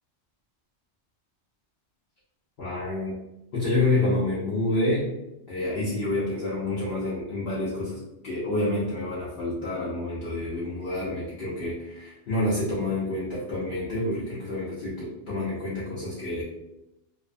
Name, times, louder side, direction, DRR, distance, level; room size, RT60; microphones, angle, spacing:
voice 1, 2.6-3.2 3.5-5.1 5.5-16.4, left 2 dB, 60° left, -8 dB, 0.8 m, -28 dB
2.6 x 2.1 x 2.5 m, 0.88 s
omnidirectional pair, 1.2 m